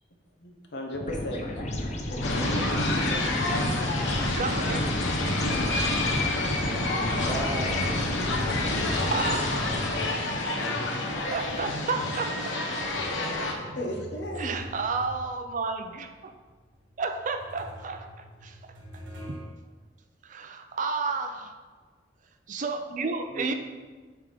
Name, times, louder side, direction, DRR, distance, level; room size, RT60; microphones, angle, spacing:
voice 1, 0.4-1.6 2.1-2.8 13.8-14.5, left 1 dB, 65° left, 1 dB, 1.0 m, -35 dB
sound 1, 0.9-10.4, left 1 dB, 40° left, 0.8 m, -32 dB
sound 2, 1.6-6.6 6.9-11.6 12.2-12.3 13.1-19.5, equal, 85° right, 1.1 m, -48 dB
sound 3, 2.2-13.5, left 2 dB, 90° left, 1.0 m, -28 dB
voice 2, 4.4-4.8 8.6-8.7 9.1-9.7 11.3-12.3 13.1-13.2 13.6-13.8 14.4-16.3 17.0-18.1 18.4-18.6 20.2-21.5 22.5-23.5, right 4 dB, 45° right, 7 dB, 0.4 m, -31 dB
voice 3, 6.7-7.7 10.6-11.1 23.3-23.5, right 1 dB, 20° right, 1 dB, 0.7 m, -37 dB
7.3 x 3.6 x 5.0 m, 1.4 s
head